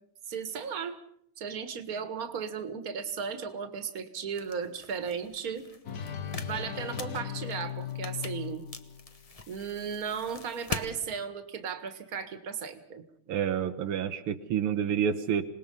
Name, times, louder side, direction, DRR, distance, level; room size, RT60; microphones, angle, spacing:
voice 1, 0.3-1.0 1.4-5.7 6.4-8.6 9.5-13.0, right 6 dB, 45° right, 10 dB, 2.0 m, -35 dB
sound 1, 4.3-10.9, left 3 dB, 20° left, 1.0 m, -43 dB
sound 2, 5.9-10.8, left 8 dB, 50° left, 1.5 m, -39 dB
voice 2, 13.3-15.4, right 8 dB, 80° right, 6 dB, 2.0 m, -28 dB
27.0 x 19.5 x 5.5 m, 0.66 s
omnidirectional pair, 2.4 m